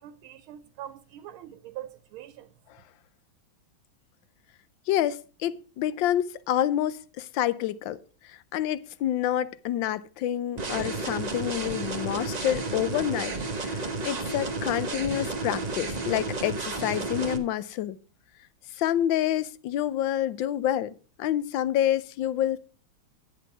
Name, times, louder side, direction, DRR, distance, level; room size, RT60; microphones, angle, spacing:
voice 1, 0.0-2.5, right 12 dB, 90° right, 1.5 m, -43 dB
voice 2, 4.9-8.0 8.2-18.0 18.8-22.6, left 12 dB, 75° left, 1.3 m, -28 dB
sound 1, 10.6-17.4, right 3 dB, 30° right, 0.8 m, -32 dB
10.5 x 8.2 x 4.6 m
omnidirectional pair, 2.3 m